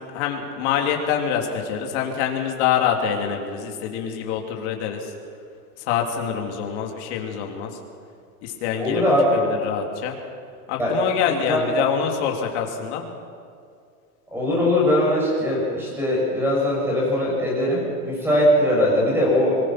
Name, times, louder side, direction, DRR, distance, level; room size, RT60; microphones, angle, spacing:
voice 1, 0.0-5.1 5.9-7.7 8.4-9.0 9.3-10.2 10.7-13.0, left 8 dB, 45° left, 2 dB, 3.2 m, -25 dB
voice 2, 8.8-9.4 10.8-11.0 11.2-11.7 14.3-19.6, left 1 dB, 5° right, -4 dB, 7.3 m, -21 dB
25.0 x 20.5 x 6.0 m, 2.3 s
supercardioid pair, 160°, 47 cm